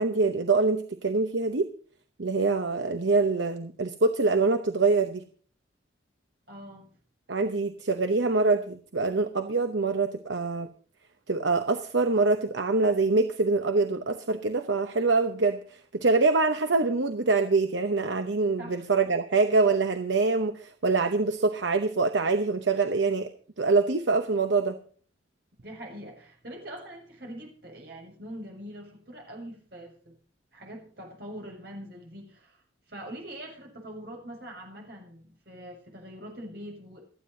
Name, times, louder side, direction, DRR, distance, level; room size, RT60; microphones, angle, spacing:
voice 1, 0.0-1.7 2.2-5.2 7.3-10.7 11.3-23.3 23.6-24.8, right 3 dB, 80° right, 8 dB, 0.9 m, -25 dB
voice 2, 6.5-6.9 18.6-18.9 25.6-30.2 30.5-32.6 32.9-37.0, equal, 60° right, 0 dB, 6.5 m, -43 dB
28.0 x 9.6 x 2.7 m, 0.43 s
head